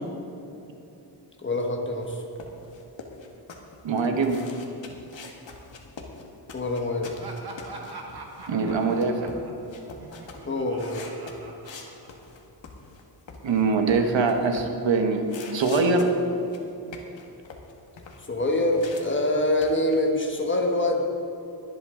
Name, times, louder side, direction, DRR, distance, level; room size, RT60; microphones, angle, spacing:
voice 1, 1.4-2.2 6.5-7.1 10.4-11.0 18.3-21.0, left 1 dB, 25° left, 1 dB, 1.2 m, -25 dB
sound 1, 2.0-13.0 13.3-14.8 15.2-19.0 19.3-20.0, left 4 dB, 90° left, 1.5 m, -44 dB
voice 2, 3.8-4.4 8.5-9.3 13.4-15.3 15.5-16.1, right 4 dB, 85° right, 5 dB, 1.3 m, -23 dB
Laughter, 7.0-12.5, right 2 dB, 55° right, 1.4 m, -43 dB
22.0 x 8.1 x 3.8 m, 2.9 s
wide cardioid pair, 180°, 44 cm